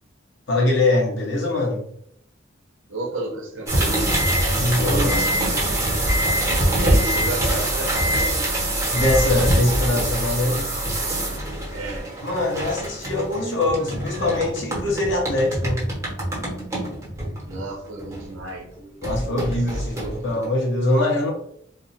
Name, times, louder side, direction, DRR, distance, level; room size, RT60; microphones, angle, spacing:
voice 1, 0.5-1.8 4.5-5.3 8.9-10.7 12.2-15.9 19.0-21.3, left 2 dB, 65° left, -1 dB, 1.1 m, -22 dB
voice 2, 2.9-4.1 4.9-5.5 6.8-8.5 11.7-12.1 17.5-19.0 19.2-20.5, right 2 dB, 85° right, 1 dB, 1.0 m, -33 dB
sound 1, 3.7-18.5 19.0-20.5, right 1 dB, 15° right, 1.1 m, -24 dB
3.5 x 2.1 x 4.2 m, 0.69 s
head